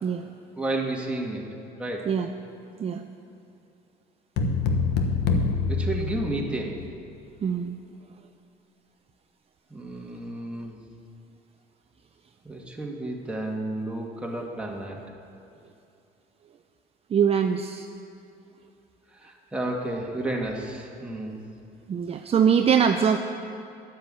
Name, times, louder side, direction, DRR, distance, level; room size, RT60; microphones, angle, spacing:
voice 1, 0.6-1.4 1.8-2.1 5.7-6.8 9.7-10.8 12.4-15.0 19.2-21.4, right 2 dB, 5° right, -1 dB, 1.9 m, -31 dB
sound 1, 4.4-6.9, left 4 dB, 85° left, 1.2 m, -25 dB
voice 2, 7.4-7.8 17.1-17.9 21.9-23.2, right 7 dB, 35° right, 6 dB, 0.5 m, -22 dB
10.0 x 9.9 x 7.6 m, 2.7 s
cardioid pair, 110°, 17 cm